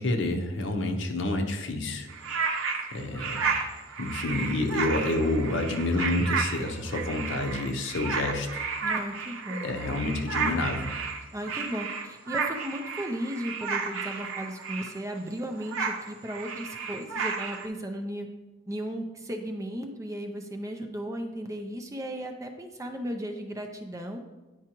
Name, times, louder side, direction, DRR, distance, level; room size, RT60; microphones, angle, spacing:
voice 1, 0.0-2.6 2.9-3.6 4.0-8.7 9.5-10.9, left 2 dB, 65° left, 4 dB, 0.7 m, -29 dB
sound 1, 2.1-15.2 15.5-17.7, right 5 dB, 85° right, 0.7 m, -32 dB
voice 2, 8.8-9.8 11.3-18.3 18.7-24.2, equal, 15° right, 4 dB, 0.5 m, -35 dB
9.6 x 4.7 x 3.0 m, 1.1 s
head